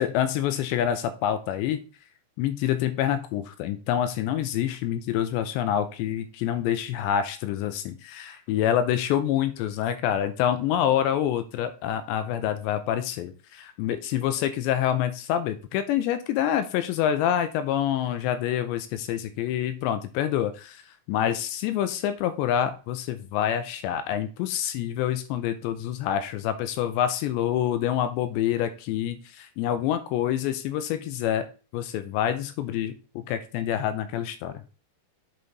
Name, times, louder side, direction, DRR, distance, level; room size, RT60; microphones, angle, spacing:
voice 1, 0.0-1.8 2.4-20.8 21.1-31.4 31.7-34.6, left 10 dB, 80° left, 10 dB, 2.8 m, -27 dB
7.9 x 5.2 x 4.0 m, 0.34 s
omnidirectional pair, 5.3 m